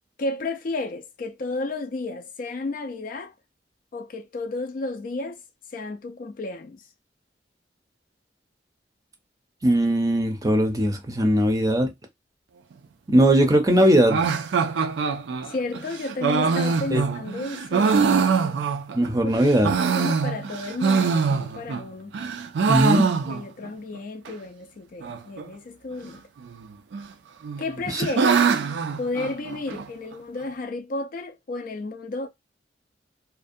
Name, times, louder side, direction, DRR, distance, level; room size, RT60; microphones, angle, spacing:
voice 1, 0.2-3.3 3.9-5.4 5.7-6.8 15.4-18.0 19.2-19.6 19.9-22.1 23.3-26.2 27.6-28.4 29.0-32.3, left 2 dB, 50° left, 0.4 m, -32 dB
voice 2, 9.6-11.9 13.1-14.2 16.9-17.0 18.9-19.8 22.7-23.1 27.9-28.1, right 1 dB, 20° right, 0.5 m, -19 dB
sound 1, 14.1-19.1 19.5-21.8 22.1-23.7 23.9-24.0 24.3-24.4 25.0-25.4 26.5-27.1 27.4-29.9, right 5 dB, 85° right, 0.4 m, -23 dB
2.5 x 2.1 x 2.5 m
head